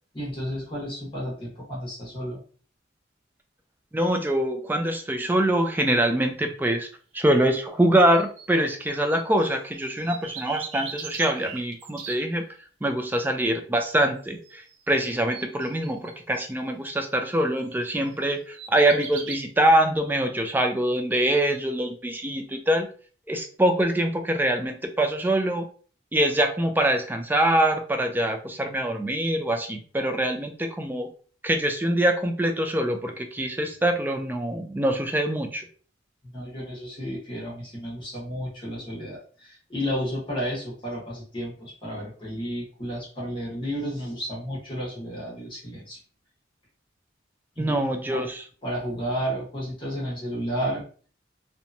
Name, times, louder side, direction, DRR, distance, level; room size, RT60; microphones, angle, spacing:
voice 1, 0.1-2.4 36.3-46.0 47.6-47.8 48.1-48.3 48.6-50.8, equal, 25° left, -5 dB, 0.9 m, -32 dB
voice 2, 3.9-6.9 7.1-12.4 12.8-22.9 23.3-25.7 26.1-31.1 31.4-35.7 47.6-48.4, right 1 dB, 10° right, 5 dB, 0.3 m, -24 dB
sound 1, 8.1-9.5 9.8-12.3 14.4-14.7 15.1-16.4 17.8-18.1 18.5-19.4, right 6 dB, 85° right, 0.5 m, -39 dB
2.8 x 2.2 x 2.5 m, 0.42 s
head